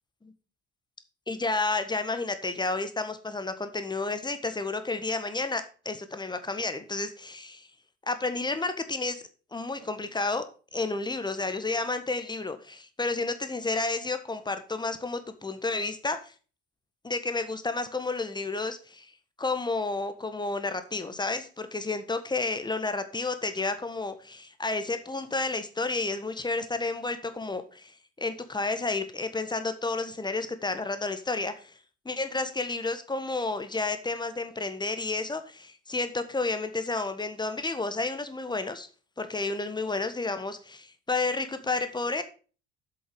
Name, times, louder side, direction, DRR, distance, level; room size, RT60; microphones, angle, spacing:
voice 1, 1.3-7.7 8.1-9.2 9.5-10.4 10.7-16.3 17.0-19.1 19.4-31.7 32.0-38.9 39.2-42.2, left 3 dB, 10° left, 10 dB, 1.4 m, -31 dB
7.9 x 7.6 x 5.2 m, 0.36 s
figure-of-eight pair, 60°, 34 cm